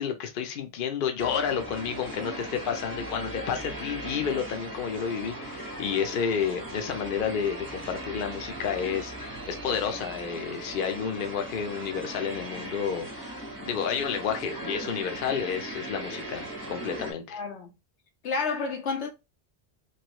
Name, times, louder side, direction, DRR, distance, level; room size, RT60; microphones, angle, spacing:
voice 1, 0.0-17.4, left 7 dB, 60° left, 0.7 m, -31 dB
sound 1, 1.2-17.1, right 1 dB, 20° right, 0.9 m, -38 dB
voice 2, 17.3-17.7 18.2-19.1, left 4 dB, 90° left, 1.0 m, -30 dB
3.1 x 2.6 x 2.9 m
omnidirectional pair, 1.1 m